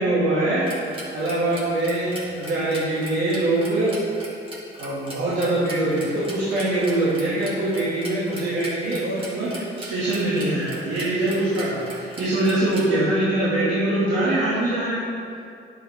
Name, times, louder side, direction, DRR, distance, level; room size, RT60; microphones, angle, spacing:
voice 1, 0.0-4.0 4.8-15.1, right 1 dB, 75° right, -9 dB, 2.2 m, -23 dB
sound 1, 0.7-12.9, right 1 dB, 25° right, 2.1 m, -40 dB
9.9 x 7.7 x 3.5 m, 2.5 s
cardioid pair, 90°, 20 cm